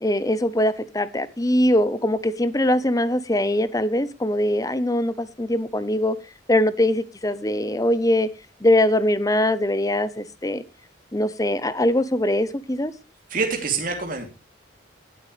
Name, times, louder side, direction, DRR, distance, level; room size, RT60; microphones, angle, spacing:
voice 1, 0.0-6.2 6.5-8.3 8.6-10.6 11.1-12.9, left 1 dB, 20° left, 15 dB, 0.7 m, -22 dB
voice 2, 13.3-14.3, right 4 dB, 45° right, 2 dB, 2.9 m, -26 dB
19.0 x 8.2 x 3.2 m, 0.28 s
head